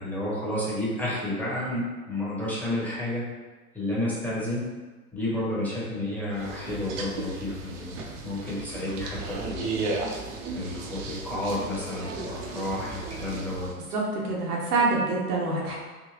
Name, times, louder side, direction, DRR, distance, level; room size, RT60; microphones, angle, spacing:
voice 1, 0.0-3.2 3.7-4.6 5.1-8.0 8.2-9.8 10.5-13.7, left 1 dB, 5° left, -8 dB, 1.0 m, -31 dB
sound 1, 6.3-13.7, right 3 dB, 50° right, 0.7 m, -35 dB
voice 2, 13.9-15.8, right 3 dB, 85° right, -3 dB, 1.1 m, -26 dB
3.7 x 2.1 x 2.9 m, 1.3 s
hypercardioid pair, 105°, 45 cm